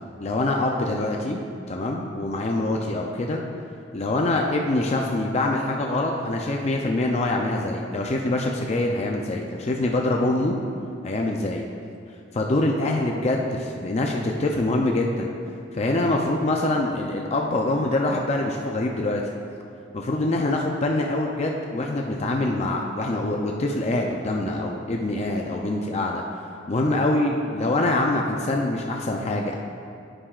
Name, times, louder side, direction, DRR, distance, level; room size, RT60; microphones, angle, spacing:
voice 1, 0.2-1.4 1.7-3.4 3.9-10.6 11.0-11.6 12.3-15.3 15.7-19.2 19.9-26.2 26.7-29.6, left 2 dB, 35° left, 1 dB, 0.5 m, -24 dB
9.7 x 8.7 x 2.4 m, 2.5 s
head